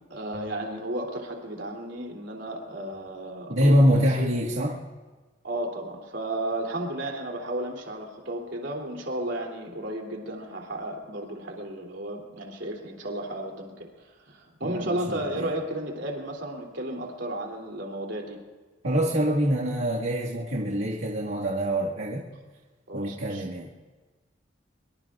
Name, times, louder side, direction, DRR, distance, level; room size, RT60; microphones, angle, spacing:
voice 1, 0.1-4.3 5.4-13.9 14.3-18.4 22.9-23.5, right 1 dB, 70° right, 0 dB, 3.0 m, -33 dB
voice 2, 3.5-4.8 14.6-15.5 18.8-22.2 22.9-23.7, equal, 90° right, -6 dB, 1.9 m, -25 dB
24.5 x 23.5 x 2.5 m, 1.3 s
head